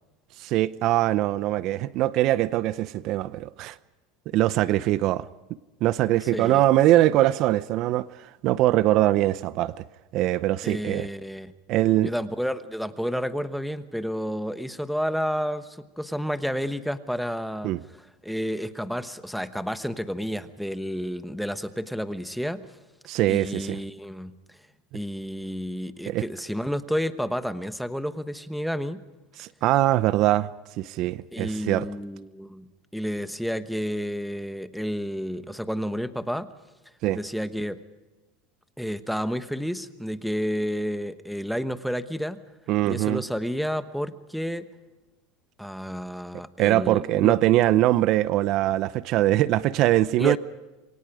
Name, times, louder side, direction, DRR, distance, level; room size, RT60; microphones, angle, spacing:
voice 1, 0.4-3.8 4.3-5.3 5.8-9.7 10.1-11.1 11.7-12.1 17.6-17.8 23.1-23.8 26.1-26.2 29.4-30.5 30.8-31.9 37.0-37.2 42.7-43.2 46.6-50.4, right 15 dB, 50° right, 0.6 m, -22 dB
voice 2, 6.3-6.6 10.6-11.5 12.0-22.7 23.3-24.3 24.9-29.0 31.3-36.5 37.1-37.8 38.8-42.4 42.8-44.7 45.6-47.3 50.2-50.4, equal, ahead, 1.1 m, -30 dB
27.5 x 23.5 x 4.9 m
supercardioid pair, 135°, 0 cm